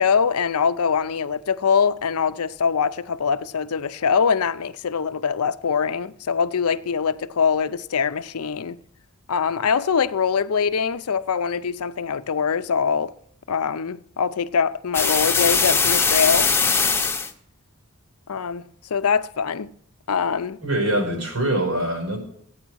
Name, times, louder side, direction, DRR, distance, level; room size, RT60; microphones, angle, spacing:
voice 1, 0.0-8.8 9.3-13.1 13.5-16.5 18.3-18.6 18.9-19.7 20.1-20.6, left 6 dB, 75° left, 0.6 m, -23 dB
sound 1, 14.9-17.3, left 5 dB, 10° left, 0.7 m, -20 dB
voice 2, 20.6-22.2, right 1 dB, 90° right, 5.0 m, -23 dB
15.0 x 9.0 x 6.2 m
head